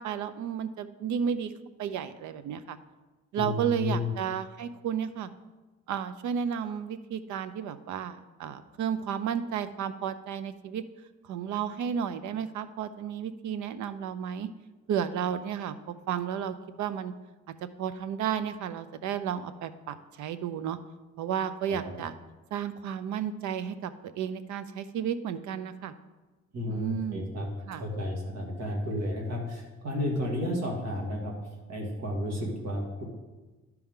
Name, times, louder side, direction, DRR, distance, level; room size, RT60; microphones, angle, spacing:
voice 1, 0.0-1.5 1.8-2.8 3.3-5.3 5.9-10.8 11.3-14.5 14.9-15.7 16.1-17.1 17.8-20.8 21.2-22.1 22.5-25.9 26.7-27.3 27.7-27.8, right 8 dB, 75° right, 13 dB, 0.6 m, -32 dB
voice 2, 3.4-4.1 21.7-21.9 26.5-31.3 31.7-33.0, left 1 dB, 60° right, -1 dB, 2.3 m, -32 dB
12.5 x 4.6 x 3.7 m, 1.2 s
cardioid pair, 90°, 30 cm